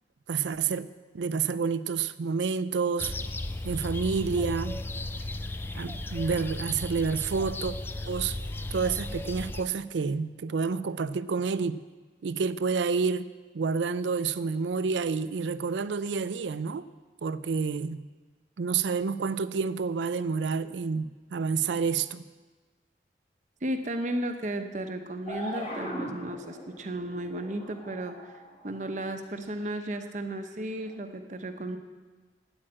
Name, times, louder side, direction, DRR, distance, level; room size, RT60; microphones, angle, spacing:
voice 1, 0.3-0.9 1.1-3.1 3.6-4.8 5.7-7.7 8.1-8.4 8.7-11.8 12.2-16.9 17.2-18.0 18.6-22.2, right 5 dB, 90° right, 0.5 m, -29 dB
sound 1, 3.0-9.6, left 2 dB, 10° left, 0.3 m, -35 dB
voice 2, 23.6-28.3 28.6-31.8, right 1 dB, 45° right, 0.8 m, -34 dB
sound 2, 25.3-29.1 29.8-30.0 30.8-30.9, equal, 35° left, 2.2 m, -40 dB
8.9 x 8.6 x 8.8 m
head